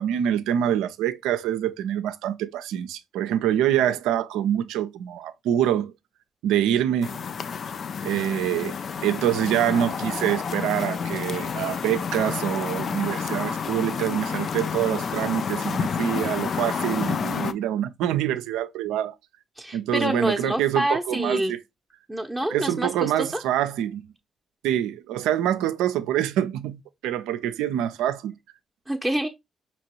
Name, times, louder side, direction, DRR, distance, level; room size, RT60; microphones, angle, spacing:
voice 1, 0.0-5.9 6.4-7.2 8.0-8.8 9.0-19.1 19.7-21.6 22.5-24.0 24.6-28.4, right 11 dB, 80° right, 0.3 m, -25 dB
sound 1, 7.0-17.5, left 6 dB, 60° left, 0.3 m, -29 dB
voice 2, 19.6-21.5 22.1-23.4 28.9-29.3, right 1 dB, 5° right, 0.6 m, -27 dB
5.1 x 2.9 x 2.9 m
hypercardioid pair, 40°, 0 cm